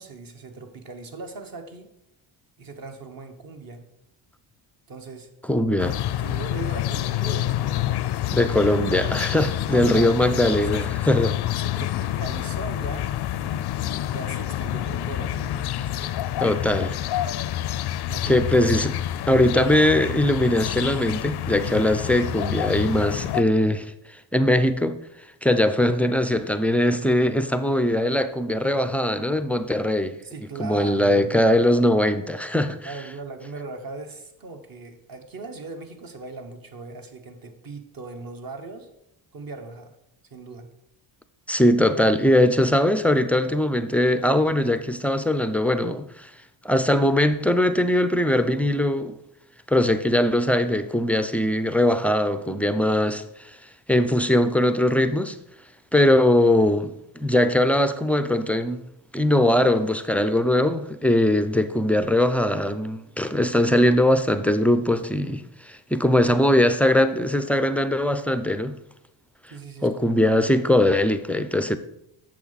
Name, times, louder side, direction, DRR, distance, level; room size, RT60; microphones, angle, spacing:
voice 1, 0.0-1.9 2.6-3.9 4.9-5.3 6.2-7.9 9.6-10.8 11.1-13.1 13.4-16.1 18.1-18.4 30.2-31.5 32.8-38.9 39.3-40.0 40.3-40.7 69.5-70.3, right 3 dB, 45° right, 1.3 m, -39 dB
voice 2, 5.5-6.0 8.3-11.3 16.4-17.0 18.2-19.0 19.3-23.9 24.3-25.0 25.4-30.2 30.6-32.9 41.5-46.3 46.6-49.1 49.7-53.5 53.9-55.4 55.9-58.8 59.1-68.8 69.8-71.8, left 1 dB, 5° left, 0.4 m, -21 dB
sound 1, 5.8-23.4, left 12 dB, 55° left, 0.5 m, -28 dB
8.4 x 6.7 x 4.1 m
cardioid pair, 90°, 49 cm